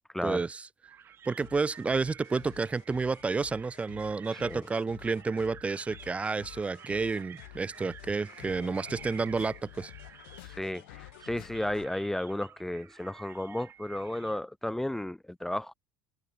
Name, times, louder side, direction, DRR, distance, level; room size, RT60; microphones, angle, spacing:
voice 1, 0.2-0.6 1.3-9.9, right 4 dB, 20° right, 1.0 m, -30 dB
sound 1, 0.8-14.4, right 9 dB, 40° right, 1.4 m, -51 dB
sound 2, 1.4-11.9, left 23 dB, 80° left, 1.0 m, -50 dB
voice 2, 4.3-4.6 10.4-15.7, left 1 dB, 5° left, 0.7 m, -33 dB
hypercardioid pair, 75°, 6 cm